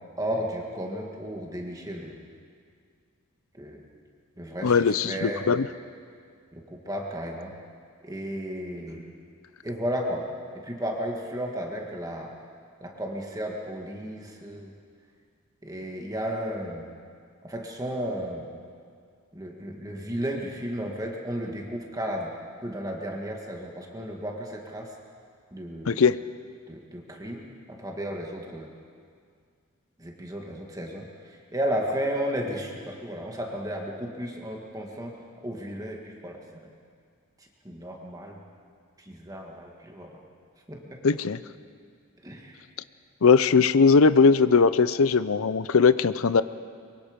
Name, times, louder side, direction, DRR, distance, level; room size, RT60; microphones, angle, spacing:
voice 1, 0.2-2.2 3.6-3.8 4.4-4.8 5.1-5.5 6.5-7.5 8.1-9.1 9.6-10.2 10.6-12.3 12.8-14.7 15.6-16.9 17.4-18.5 19.3-22.3 22.6-24.9 25.5-26.0 26.7-27.5 27.8-28.7 30.0-31.0 31.5-35.1 35.4-36.4 37.7-38.4 39.1-40.2 40.7-40.8 42.2-42.5, equal, 15° right, 0 dB, 1.9 m, -33 dB
voice 2, 4.6-5.7 25.9-26.1 41.0-41.4 43.2-46.4, left 5 dB, 75° left, 15 dB, 0.6 m, -19 dB
24.0 x 22.5 x 5.2 m, 2.2 s
head